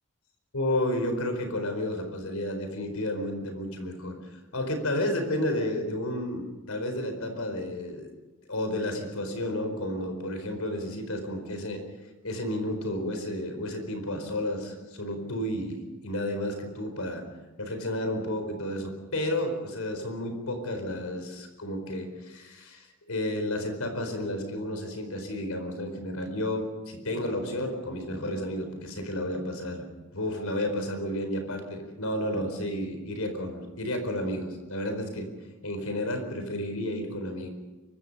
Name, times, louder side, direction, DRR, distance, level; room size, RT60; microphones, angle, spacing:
voice 1, 0.5-4.1 4.5-8.1 8.5-11.8 12.2-17.2 17.6-29.8 30.1-35.3 35.6-37.5, left 1 dB, 90° left, 6 dB, 4.5 m, -31 dB
25.0 x 23.5 x 5.6 m, 1.2 s
head